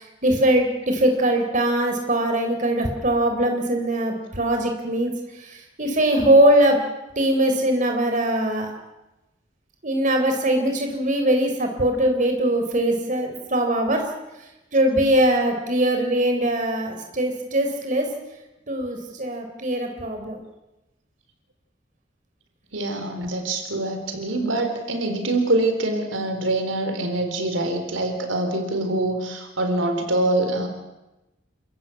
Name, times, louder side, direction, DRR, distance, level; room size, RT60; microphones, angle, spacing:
voice 1, 0.0-5.1 5.4-6.8 7.2-8.7 9.8-14.0 14.7-18.1 18.7-20.4, right 1 dB, 40° right, 4 dB, 3.6 m, -21 dB
voice 2, 22.7-30.7, right 2 dB, 85° right, 6 dB, 4.1 m, -24 dB
28.5 x 14.5 x 9.6 m, 1.0 s
head